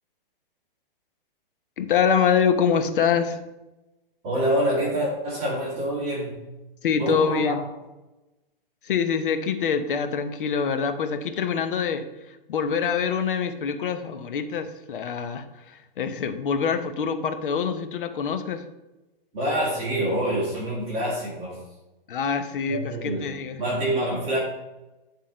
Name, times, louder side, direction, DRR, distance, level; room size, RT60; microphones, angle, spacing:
voice 1, 1.8-3.4 6.8-7.6 8.8-18.6 22.1-23.6, left 6 dB, 60° left, 9 dB, 0.8 m, -25 dB
voice 2, 4.2-6.5 7.0-7.5 19.3-21.6 22.7-23.2 23.6-24.4, right 1 dB, 20° right, -6 dB, 2.2 m, -26 dB
9.3 x 3.6 x 4.3 m, 1.0 s
hypercardioid pair, 165°, 29 cm